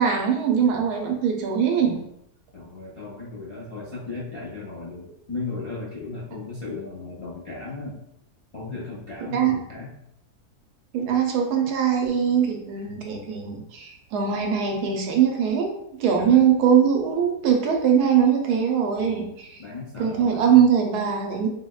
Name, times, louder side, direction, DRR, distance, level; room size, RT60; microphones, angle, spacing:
voice 1, 0.0-2.0 9.3-9.6 10.9-15.7 16.0-19.6 20.0-21.5, right 8 dB, 85° right, 2 dB, 1.2 m, -21 dB
voice 2, 2.5-8.0 8.5-9.9 16.2-16.4 19.0-19.3 19.6-20.6, left 3 dB, 40° left, -8 dB, 0.4 m, -36 dB
3.9 x 2.1 x 2.3 m, 0.76 s
omnidirectional pair, 1.7 m